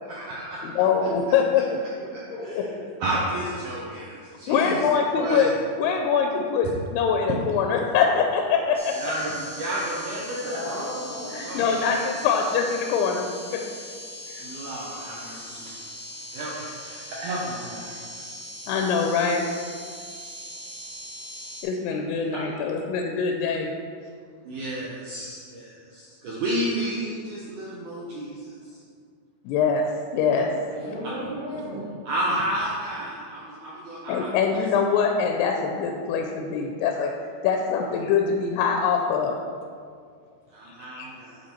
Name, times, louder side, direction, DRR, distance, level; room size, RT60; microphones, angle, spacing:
voice 1, 0.0-1.1 1.5-1.6 2.4-2.6 3.0-5.5 8.9-11.0 11.3-11.9 14.4-15.6 16.3-18.0 24.5-28.4 30.8-30.9 32.1-34.6 40.5-41.4, right 1 dB, 75° right, -5 dB, 1.9 m, -32 dB
voice 2, 0.6-1.6 4.5-5.5 5.8-8.9 11.3-13.6 14.3-14.4 18.7-19.4 21.6-23.7 29.5-29.9 30.1-30.5 34.1-37.1 37.4-39.4 40.9-41.1, left 6 dB, 90° left, 2 dB, 2.6 m, -23 dB
voice 3, 2.3-2.7 10.4-11.3 30.7-31.8, equal, 50° left, -13 dB, 2.7 m, -34 dB
sound 1, 8.7-21.6, equal, 40° right, 1.3 m, -40 dB
10.0 x 4.3 x 4.4 m, 2.1 s
omnidirectional pair, 4.6 m